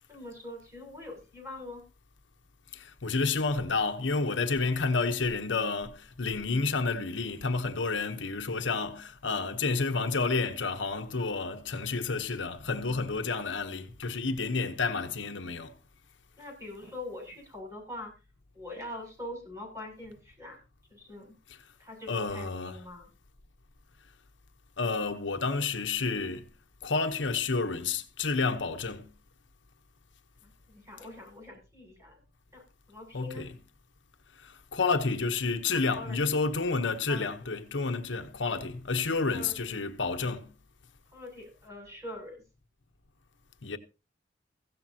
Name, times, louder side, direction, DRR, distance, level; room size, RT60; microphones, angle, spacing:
voice 1, 0.1-1.8 16.4-18.1 18.5-20.6 20.9-21.3 21.8-23.1 30.4-32.2 32.5-33.5 35.7-36.2 36.8-37.5 39.3-39.5 41.1-42.4, left 1 dB, 15° right, 7.6 m, -43 dB
voice 2, 2.7-15.7 22.1-22.8 24.8-26.5 26.8-29.1 33.1-33.6 34.3-40.5 43.6-43.8, left 4 dB, 80° left, 1.0 m, -30 dB
15.5 x 13.5 x 2.9 m
head